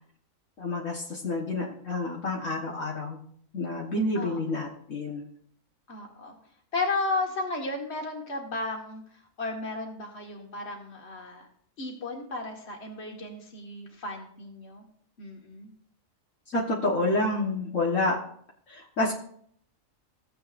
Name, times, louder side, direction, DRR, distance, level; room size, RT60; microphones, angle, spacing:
voice 1, 0.6-3.2 3.5-5.3 16.5-18.2 18.7-19.1, left 2 dB, 70° left, -3 dB, 1.8 m, -28 dB
voice 2, 4.1-4.7 5.9-6.4 6.7-11.5 11.8-14.9 15.2-15.7, left 3 dB, 55° left, 1 dB, 2.0 m, -34 dB
16.0 x 7.8 x 2.6 m, 0.62 s
omnidirectional pair, 1.4 m